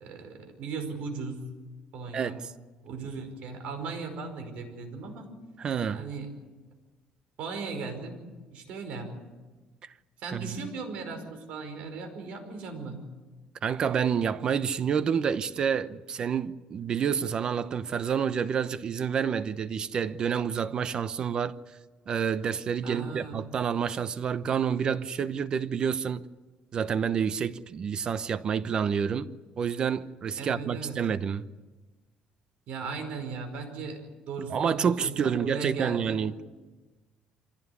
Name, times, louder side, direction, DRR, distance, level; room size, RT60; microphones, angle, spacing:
voice 1, 0.0-1.5 1.9-2.4 2.8-5.3 5.9-6.3 7.4-8.2 8.5-9.2 10.2-13.1 22.8-23.5 30.4-31.0 32.7-34.0 34.3-36.2, right 4 dB, 65° right, 5.2 m, -37 dB
voice 2, 2.1-2.4 5.6-6.0 10.3-10.6 13.6-21.6 22.1-26.3 26.7-29.3 29.6-31.5 34.5-36.4, right 7 dB, 40° right, 0.8 m, -28 dB
25.0 x 17.0 x 9.6 m
cardioid pair, 140°, 2 cm